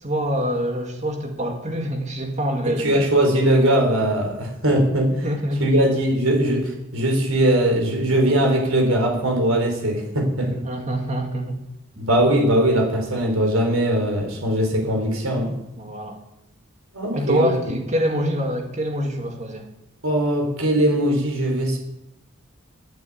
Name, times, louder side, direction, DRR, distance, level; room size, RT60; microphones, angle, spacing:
voice 1, 0.0-3.1 5.1-5.8 10.4-11.6 12.0-12.1 15.8-16.2 17.1-19.7, equal, 35° right, 3 dB, 2.0 m, -25 dB
voice 2, 2.8-5.1 5.6-10.6 12.0-15.6 16.9-17.5 20.0-21.8, right 1 dB, 80° right, 3 dB, 4.2 m, -20 dB
11.5 x 9.0 x 8.6 m, 0.88 s
head